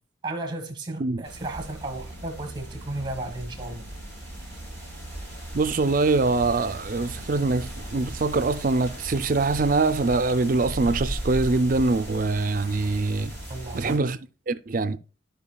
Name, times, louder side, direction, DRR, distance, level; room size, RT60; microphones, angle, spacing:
voice 1, 0.2-3.8 13.5-14.0, right 2 dB, 25° right, 1.3 m, -34 dB
sound 1, 1.2-14.0, right 1 dB, 15° left, 2.6 m, -37 dB
voice 2, 5.5-13.4 13.7-14.2 14.5-15.0, right 3 dB, 40° right, 0.4 m, -23 dB
14.5 x 5.1 x 2.3 m
head